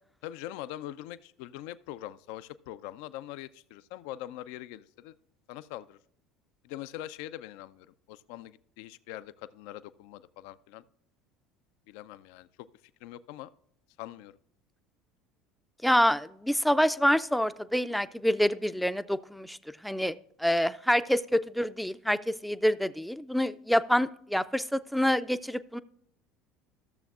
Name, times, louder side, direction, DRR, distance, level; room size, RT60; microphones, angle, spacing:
voice 1, 0.2-5.1 5.5-6.0 6.6-10.8 11.9-12.7 13.0-13.5 14.0-14.3, left 14 dB, 65° left, 15 dB, 0.4 m, -43 dB
voice 2, 15.8-19.6 19.8-20.1 20.4-25.8, equal, ahead, 13 dB, 0.4 m, -26 dB
14.0 x 7.0 x 2.4 m, 0.68 s
hypercardioid pair, 70°, 0 cm